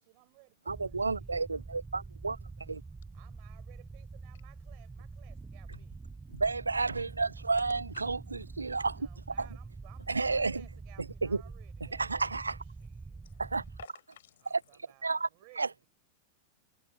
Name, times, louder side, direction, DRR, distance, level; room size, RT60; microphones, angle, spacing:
voice 1, 0.0-1.5 3.1-6.0 9.0-12.5 12.8-13.3 14.4-15.9, right 40 dB or more, 45° right, 5.5 m, -61 dB
sound 1, 0.7-13.9, right 3 dB, 10° right, 0.5 m, -46 dB
voice 2, 0.7-2.4 2.7-2.8 6.3-8.2 8.6-9.1 9.4-9.5 10.1-10.6 11.2-11.4 11.9-12.5 13.4-13.6 14.5-14.6 15.0-15.3 15.6-15.8, right 4 dB, 80° right, 0.3 m, -31 dB
voice 3, 13.2-14.6, left 12 dB, 60° left, 5.1 m, -56 dB
figure-of-eight pair, 90°, 0 cm